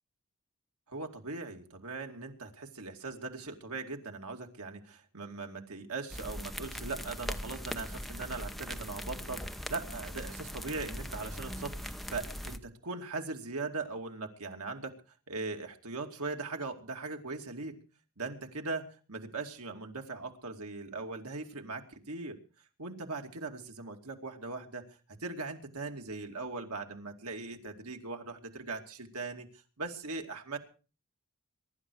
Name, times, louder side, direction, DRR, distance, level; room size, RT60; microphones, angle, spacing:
voice 1, 0.9-15.0 15.3-17.8 18.2-22.4 22.8-24.9 25.2-29.5 29.8-30.6, right 3 dB, 75° right, 3 dB, 2.6 m, -40 dB
sound 1, 6.1-12.6, equal, ahead, 0.9 m, -40 dB
23.5 x 11.5 x 4.8 m, 0.37 s
head